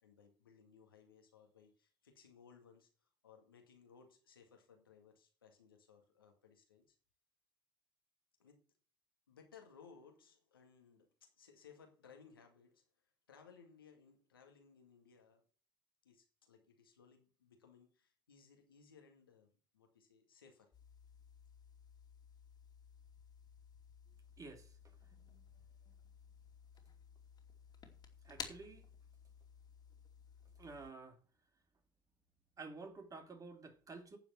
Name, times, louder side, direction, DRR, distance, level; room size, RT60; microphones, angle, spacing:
voice 1, 0.0-7.0 8.4-8.6 9.3-15.5 16.0-20.7, left 6 dB, 85° left, 2.0 m, -63 dB
sound 1, 20.7-30.9, left 6 dB, 35° left, 2.7 m, -56 dB
voice 2, 24.4-25.0 28.2-28.9 30.6-31.2 32.6-34.2, right 3 dB, 30° right, 2.7 m, -51 dB
9.7 x 7.1 x 6.2 m
figure-of-eight pair, 60°, 12 cm